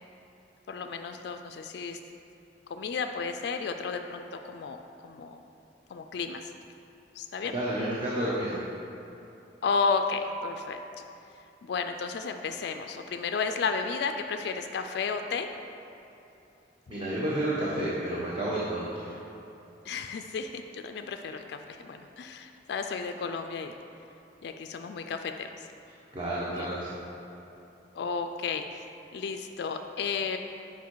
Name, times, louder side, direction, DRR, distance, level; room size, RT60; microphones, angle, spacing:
voice 1, 0.7-2.0 2.7-5.4 5.9-6.4 7.2-7.6 9.6-10.8 11.6-15.5 19.8-23.7 24.4-25.7 26.6-26.8 27.9-28.8 29.1-30.4, left 5 dB, 65° left, 6 dB, 0.3 m, -33 dB
voice 2, 7.5-8.6 16.9-19.1 26.1-26.9, right 1 dB, 30° right, -7 dB, 0.9 m, -30 dB
7.1 x 4.7 x 4.6 m, 2.9 s
head